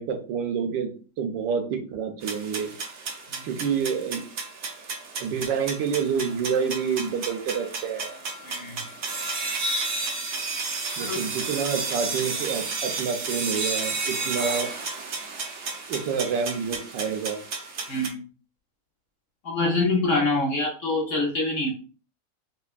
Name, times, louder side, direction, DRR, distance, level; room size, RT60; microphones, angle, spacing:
voice 1, 0.0-2.7 3.4-4.2 5.2-8.1 11.0-14.7 15.9-17.4, right 6 dB, 90° right, 5 dB, 1.4 m, -28 dB
sound 1, 2.2-18.1, right 3 dB, 65° right, 0.6 m, -32 dB
voice 2, 8.4-8.8 11.0-11.2 17.9-18.2 19.4-21.7, left 2 dB, 55° left, -1 dB, 0.9 m, -25 dB
5.3 x 2.3 x 2.4 m, 0.38 s
omnidirectional pair, 1.9 m